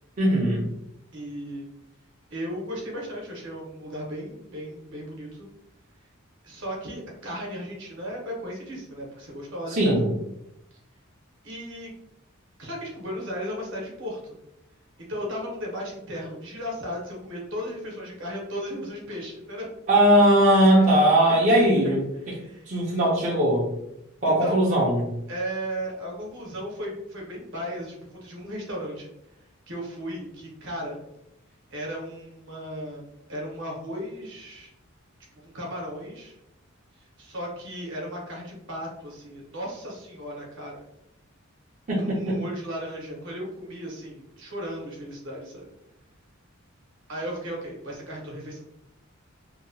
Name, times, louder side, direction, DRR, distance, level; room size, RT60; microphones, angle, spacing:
voice 1, 0.2-0.6 9.7-10.1 19.9-22.0 22.7-23.7 24.2-25.1 41.9-42.4, right 1 dB, 35° right, -6 dB, 0.5 m, -19 dB
voice 2, 1.1-1.7 2.3-5.5 6.4-9.9 11.4-11.9 12.6-14.4 15.1-19.7 20.8-21.7 22.2-22.7 24.3-24.6 25.3-29.1 29.7-31.0 31.7-33.0 33.3-34.7 35.4-36.4 37.0-40.8 42.0-45.7 47.1-48.6, equal, 60° right, -2 dB, 0.9 m, -35 dB
2.8 x 2.1 x 2.6 m, 0.85 s
head